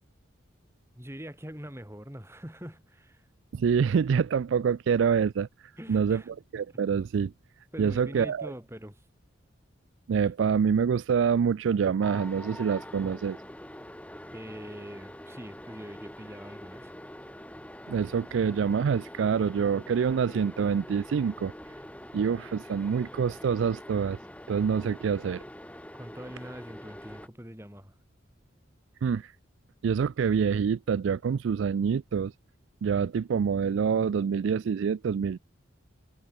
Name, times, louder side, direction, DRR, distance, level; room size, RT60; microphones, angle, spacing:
voice 1, 0.9-3.3 5.8-6.3 6.7-6.8 7.7-9.0 14.3-16.9 25.9-28.0, equal, 15° right, 3.4 m, -43 dB
voice 2, 3.5-5.5 5.9-7.3 7.8-8.5 10.1-13.4 17.9-21.5 22.1-24.2 24.5-25.4 29.0-29.3 29.8-32.3 32.8-35.4, right 6 dB, 70° right, 0.3 m, -26 dB
sound 1, 12.0-27.3, equal, 5° left, 6.5 m, -45 dB
head